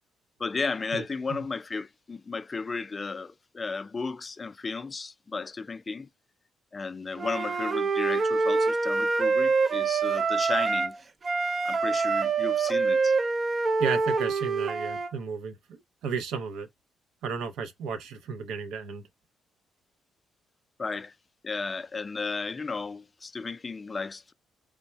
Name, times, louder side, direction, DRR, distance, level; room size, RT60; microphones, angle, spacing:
voice 1, 0.4-6.1 6.7-11.0 11.6-13.1 20.8-21.1 21.4-24.3, left 4 dB, 30° left, 0.3 m, -34 dB
Wind instrument woodwind instrument, 7.2-11.0 11.2-15.1, right 4 dB, 35° right, 0.4 m, -26 dB
voice 2, 13.8-16.7 17.2-19.0, right 6 dB, 85° right, 0.6 m, -33 dB
3.4 x 2.1 x 4.3 m
cardioid pair, 90°, 0 cm